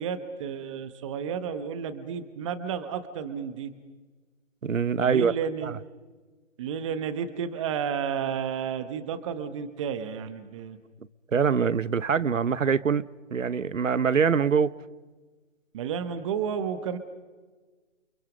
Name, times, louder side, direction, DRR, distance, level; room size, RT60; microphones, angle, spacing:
voice 1, 0.0-3.7 5.0-5.7 6.6-10.8 15.7-17.0, right 7 dB, 25° right, 1.4 m, -32 dB
voice 2, 4.6-5.3 5.6-5.8 11.3-13.0 13.3-14.8, right 6 dB, 85° right, 1.1 m, -24 dB
29.5 x 25.0 x 5.3 m
hypercardioid pair, 155°, 37 cm